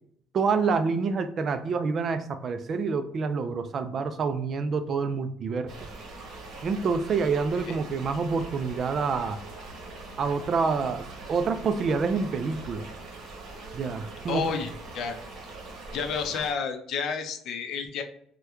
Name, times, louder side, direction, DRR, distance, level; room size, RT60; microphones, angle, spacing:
voice 1, 0.3-5.7 6.6-9.4 10.2-12.9 13.7-14.5, right 5 dB, 40° right, 10 dB, 0.3 m, -27 dB
sound 1, 5.7-16.5, right 2 dB, 60° right, 1.0 m, -42 dB
voice 2, 14.3-15.1 15.9-18.0, left 6 dB, 60° left, 6 dB, 0.5 m, -30 dB
3.4 x 2.1 x 2.9 m, 0.70 s
cardioid pair, 125°, 0 cm